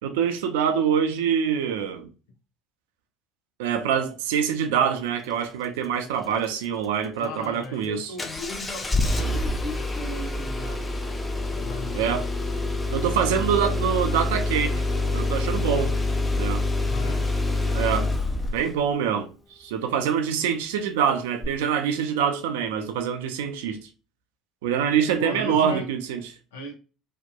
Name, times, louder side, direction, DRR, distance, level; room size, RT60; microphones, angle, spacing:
voice 1, 0.0-2.1 3.6-8.1 11.9-12.3 12.9-14.8 15.1-16.0 16.4-16.6 17.7-18.1 18.5-19.3 19.6-23.8 24.6-26.2, right 8 dB, 75° right, 0.3 m, -25 dB
voice 2, 7.2-12.3 13.3-13.5 16.8-17.3 18.1-18.4 25.2-25.9 26.5-26.7, left 2 dB, 75° left, 0.6 m, -37 dB
Engine starting, 8.2-18.8 21.4-21.5, left 2 dB, 20° left, 0.5 m, -26 dB
2.7 x 2.1 x 2.2 m
hypercardioid pair, 60°, 0 cm